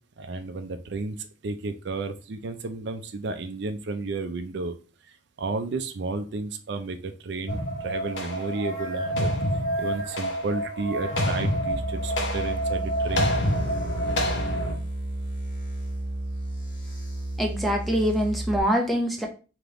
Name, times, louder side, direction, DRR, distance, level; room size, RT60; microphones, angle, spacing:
voice 1, 0.2-4.7 5.4-9.4 9.8-13.4, right 3 dB, 60° right, 8 dB, 0.4 m, -32 dB
sound 1, 7.5-14.7, equal, 70° left, 0.9 m, -27 dB
sound 2, 8.5-11.6, right 2 dB, 15° left, 1.3 m, -45 dB
sound 3, 11.7-18.6, right 1 dB, 50° left, 1.6 m, -32 dB
voice 2, 17.4-19.3, equal, ahead, 1 dB, 0.6 m, -24 dB
3.4 x 2.9 x 3.6 m, 0.35 s
head